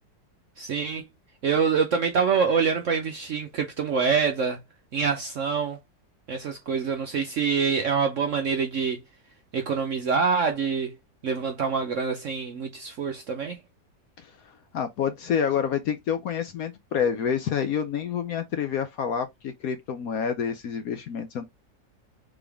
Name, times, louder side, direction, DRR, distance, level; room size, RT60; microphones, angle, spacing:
voice 1, 0.6-1.1 1.4-4.6 4.9-5.8 6.3-9.0 9.5-10.9 11.2-13.6, right 5 dB, 60° right, 0.8 m, -25 dB
voice 2, 14.7-21.4, left 7 dB, 65° left, 0.9 m, -28 dB
3.8 x 3.6 x 3.4 m
omnidirectional pair, 2.0 m